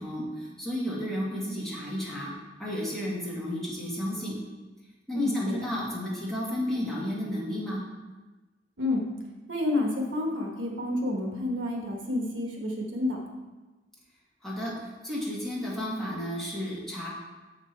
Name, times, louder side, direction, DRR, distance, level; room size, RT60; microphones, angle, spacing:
voice 1, 0.0-2.3 2.6-4.4 5.1-7.8 14.4-14.7 15.0-17.1, equal, ahead, -7 dB, 1.9 m, -32 dB
voice 2, 5.1-5.6 8.8-9.0 9.5-13.2, left 2 dB, 80° right, 0 dB, 1.3 m, -29 dB
7.1 x 5.9 x 4.4 m, 1.2 s
head